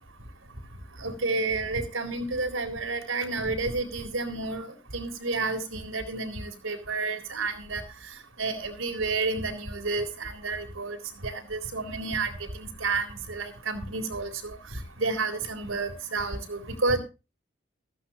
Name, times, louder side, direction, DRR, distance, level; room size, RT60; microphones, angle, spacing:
voice 1, 1.0-7.8 8.4-11.0 11.2-12.3 12.8-14.3 15.0-17.0, right 3 dB, 85° right, 6 dB, 4.1 m, -30 dB
15.5 x 15.0 x 2.9 m, 0.31 s
head